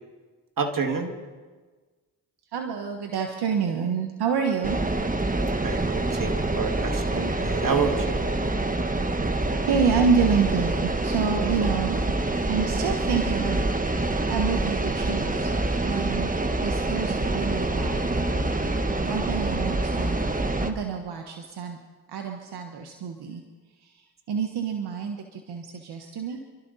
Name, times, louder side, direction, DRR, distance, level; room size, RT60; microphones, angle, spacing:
voice 1, 0.6-1.1 5.6-8.2 11.6-11.7, right 5 dB, 55° right, 5 dB, 2.3 m, -28 dB
voice 2, 2.5-4.8 9.7-12.0 12.4-15.5 15.8-16.3 16.6-18.7 19.0-20.1 20.6-21.8 22.1-23.4 23.8-24.0 24.3-26.4, right 6 dB, 80° right, 3 dB, 1.4 m, -28 dB
sound 1, 4.6-20.7, right 2 dB, 20° right, 1.5 m, -26 dB
27.0 x 12.5 x 4.2 m, 1.4 s
supercardioid pair, 50°, 38 cm